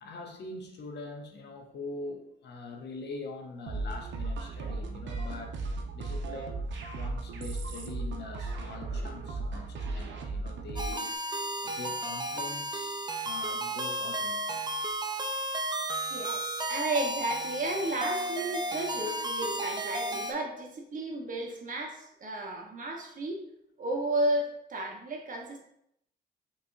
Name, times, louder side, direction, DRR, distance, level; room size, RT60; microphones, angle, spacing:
voice 1, 0.0-5.5 5.9-11.1 11.6-13.0 13.2-14.7, left 3 dB, 60° left, 3 dB, 0.8 m, -43 dB
sound 1, 3.7-11.1, right 3 dB, 65° right, 0.6 m, -36 dB
sound 2, 10.8-20.3, right 1 dB, 20° right, 0.5 m, -33 dB
voice 2, 16.0-23.4 23.8-25.6, right 2 dB, 40° right, 0 dB, 1.2 m, -33 dB
5.3 x 3.2 x 2.7 m, 0.75 s
cardioid pair, 90°, 20 cm